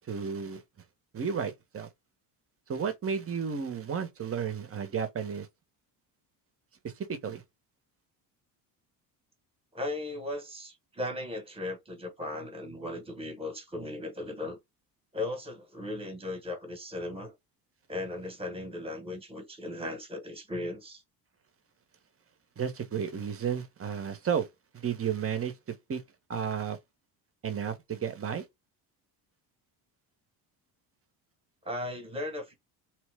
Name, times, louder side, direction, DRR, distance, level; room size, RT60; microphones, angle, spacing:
voice 1, 0.1-0.6 1.1-1.9 2.7-5.5 6.8-7.4 22.6-24.5 24.7-26.0 26.3-26.8 27.4-28.4, right 7 dB, 30° right, 0.8 m, -33 dB
voice 2, 9.7-14.6 15.1-17.3 17.9-21.0 31.6-32.5, left 1 dB, 10° right, 1.1 m, -37 dB
2.8 x 2.0 x 3.3 m
supercardioid pair, 70°, 49 cm